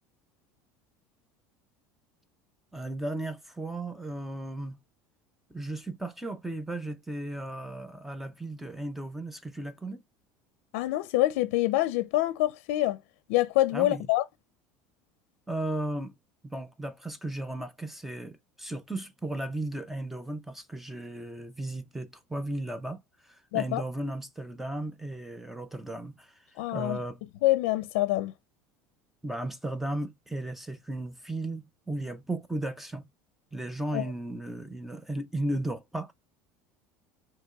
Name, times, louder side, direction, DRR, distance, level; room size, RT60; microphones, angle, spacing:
voice 1, 2.7-4.8 5.5-10.0 13.7-14.0 15.5-16.1 16.4-23.0 23.3-26.3 26.7-27.2 29.2-33.1 33.5-36.1, right 1 dB, 5° right, 0.5 m, -35 dB
voice 2, 10.7-13.0 13.3-14.2 23.5-23.8 26.6-27.0 27.4-28.3 33.9-34.0, left 16 dB, 80° left, 0.5 m, -26 dB
5.9 x 2.9 x 2.3 m
cardioid pair, 165°, 7 cm